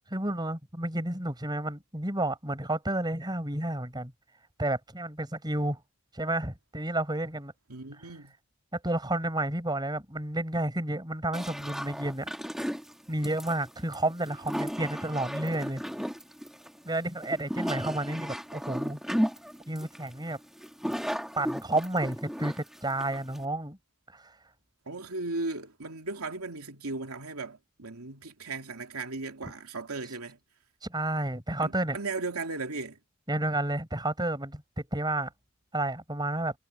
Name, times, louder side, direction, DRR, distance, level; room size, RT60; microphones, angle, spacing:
voice 1, 0.1-4.1 4.6-5.8 6.1-7.5 7.9-8.1 8.7-12.3 13.1-15.8 16.8-19.0 19.7-20.4 21.4-23.8 24.1-24.2 30.9-32.0 33.3-35.3 35.7-36.5, right 1 dB, 20° right, 5.0 m, -31 dB
voice 2, 7.7-8.3 24.9-30.4 31.6-33.0, right 3 dB, 85° right, 2.9 m, -36 dB
sound 1, 11.3-23.4, equal, ahead, 2.0 m, -34 dB
head